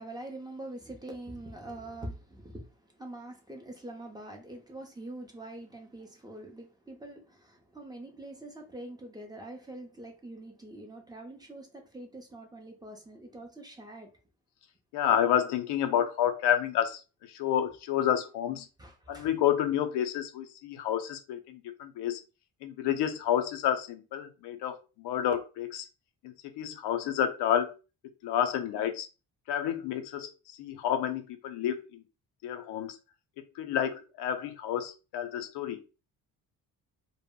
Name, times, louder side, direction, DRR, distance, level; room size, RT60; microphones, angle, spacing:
voice 1, 0.0-14.1 18.8-19.4, right 1 dB, 10° right, 0.5 m, -44 dB
voice 2, 14.9-17.0 17.3-18.7 19.1-22.2 22.6-25.9 26.2-27.7 28.0-29.1 29.5-32.0 32.4-33.0 33.6-35.8, left 10 dB, 85° left, 0.6 m, -30 dB
2.1 x 2.0 x 3.6 m
cardioid pair, 110°, 39 cm